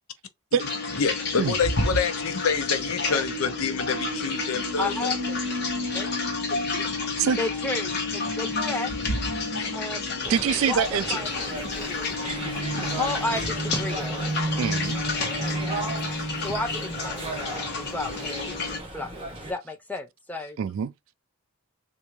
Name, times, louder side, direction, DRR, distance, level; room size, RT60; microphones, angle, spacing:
sound 1, 0.6-18.8, left 3 dB, 50° left, 1.0 m, -30 dB
voice 1, 0.9-5.1 9.6-9.7, left 6 dB, 70° left, 0.5 m, -27 dB
sound 2, 1.4-17.6, right 1 dB, 45° right, 1.5 m, -36 dB
voice 2, 4.8-5.4 5.9-6.1 6.5-7.1 7.4-9.3 9.7-10.2 10.7-11.3 11.8-12.5 12.8-14.3 16.3-20.6, left 2 dB, 10° left, 0.5 m, -33 dB
sound 3, 10.2-19.5, right 2 dB, 25° right, 0.8 m, -36 dB
voice 3, 10.3-11.2 14.6-15.0 20.6-20.9, right 7 dB, 65° right, 0.3 m, -24 dB
3.4 x 2.5 x 3.0 m
head